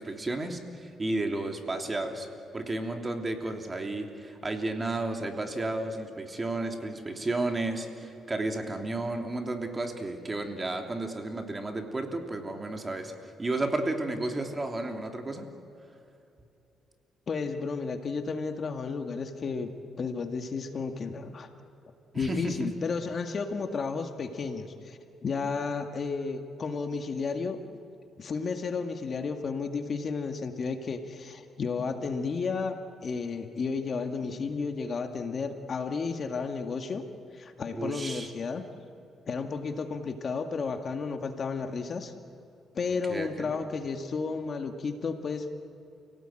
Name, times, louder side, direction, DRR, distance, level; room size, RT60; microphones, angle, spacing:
voice 1, 0.0-2.3 2.5-15.5 22.1-22.7 37.7-38.3 43.1-43.5, right 2 dB, 25° right, 4 dB, 3.1 m, -32 dB
voice 2, 17.3-19.7 20.0-21.5 22.1-27.8 28.2-37.0 37.3-38.6 39.3-42.1 42.7-45.6, left 4 dB, 45° left, 6 dB, 1.9 m, -32 dB
29.5 x 18.0 x 9.1 m, 2.8 s
cardioid pair, 90°, 0 cm